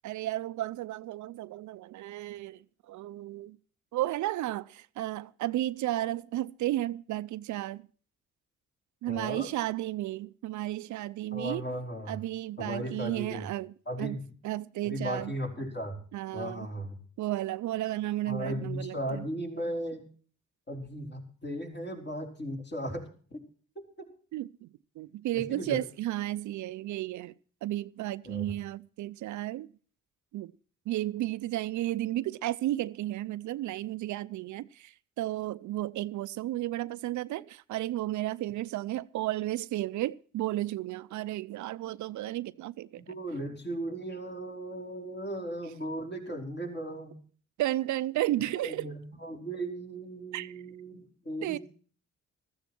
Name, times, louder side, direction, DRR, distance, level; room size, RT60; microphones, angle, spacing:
voice 1, 0.0-3.6 3.9-7.8 9.0-11.6 12.1-14.2 14.4-15.3 16.1-16.7 17.2-19.2 24.3-24.7 25.0-27.3 27.6-29.7 30.3-30.5 30.9-43.0 47.6-48.9 50.3-50.5 51.4-51.6, right 15 dB, 75° right, 0.6 m, -33 dB
voice 2, 9.1-9.5 11.3-12.2 12.6-13.5 13.9-14.2 14.8-16.0 16.3-17.0 18.3-20.1 20.7-23.1 23.3-23.4 23.7-23.8 25.3-25.8 28.2-28.5 43.0-47.2 48.6-51.6, right 1 dB, 35° left, 4.9 m, -36 dB
14.5 x 14.0 x 4.4 m
cardioid pair, 90°, 30 cm